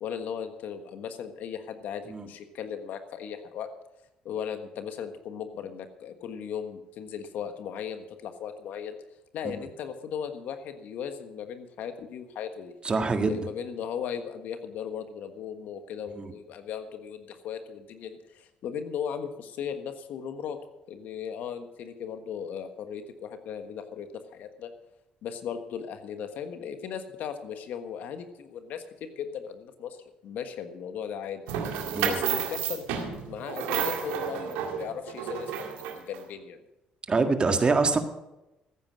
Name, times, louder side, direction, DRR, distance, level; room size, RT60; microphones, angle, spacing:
voice 1, 0.0-3.7 4.2-9.0 9.3-12.7 13.1-20.6 20.9-24.7 25.2-31.4 32.0-36.6, left 8 dB, 70° left, 8 dB, 1.4 m, -37 dB
voice 2, 12.8-13.5 16.2-16.3 31.9-32.2 37.1-38.0, right 4 dB, 35° right, 7 dB, 1.7 m, -25 dB
sound 1, 31.5-36.2, right 8 dB, 90° right, 2.0 m, -31 dB
14.5 x 9.4 x 6.3 m, 0.96 s
supercardioid pair, 70°, 3 cm